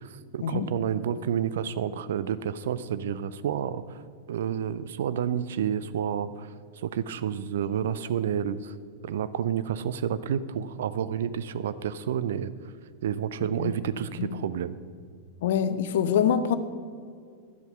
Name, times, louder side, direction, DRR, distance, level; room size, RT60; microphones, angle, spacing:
voice 1, 0.0-4.0 4.3-6.5 6.8-8.7 9.0-12.5 13.0-14.8, right 8 dB, 60° right, 15 dB, 0.4 m, -30 dB
voice 2, 15.4-16.6, left 8 dB, 55° left, 12 dB, 0.6 m, -25 dB
11.0 x 8.0 x 5.6 m, 2.2 s
figure-of-eight pair, 90°, 0 cm